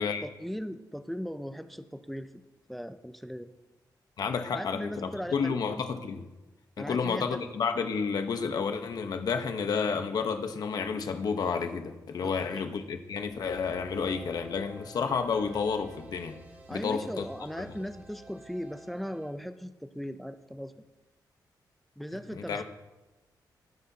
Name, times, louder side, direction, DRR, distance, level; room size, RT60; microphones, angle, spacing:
voice 1, 0.2-2.3 2.7-3.5 4.5-5.6 6.8-7.5 12.2-12.6 16.7-20.7 22.0-22.6, equal, ahead, 9 dB, 0.5 m, -38 dB
voice 2, 4.2-6.2 6.8-16.4 16.7-17.3 17.6-17.7 22.3-22.6, left 5 dB, 60° left, 7 dB, 1.0 m, -31 dB
sound 1, 13.1-19.3, right 2 dB, 25° right, 1.5 m, -50 dB
18.0 x 9.8 x 2.8 m, 1.0 s
wide cardioid pair, 175°, 7 cm